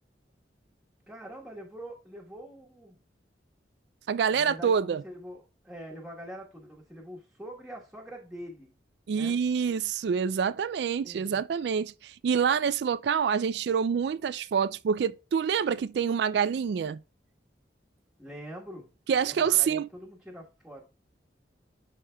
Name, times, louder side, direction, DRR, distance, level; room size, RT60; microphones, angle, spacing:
voice 1, 1.1-3.0 4.3-8.7 9.1-9.4 11.0-11.4 18.2-18.9 19.1-20.9, right 1 dB, 5° right, 1.2 m, -44 dB
voice 2, 4.1-5.0 9.1-17.0 19.1-19.9, right 7 dB, 70° right, 0.3 m, -26 dB
11.0 x 4.2 x 2.3 m
head